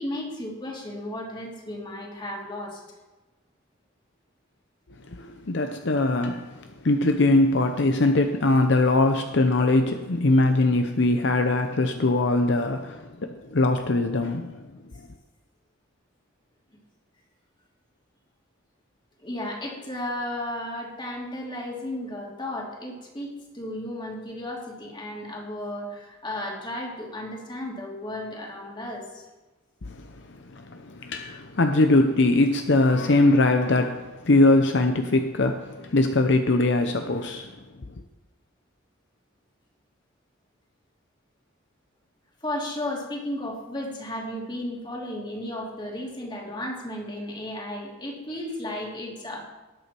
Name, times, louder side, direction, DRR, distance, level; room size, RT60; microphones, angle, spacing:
voice 1, 0.0-2.8 19.2-29.2 42.4-49.4, left 1 dB, 25° left, 2.9 m, -34 dB
voice 2, 5.1-14.7 29.8-37.6, left 2 dB, 65° left, 0.7 m, -22 dB
19.0 x 8.4 x 4.5 m
head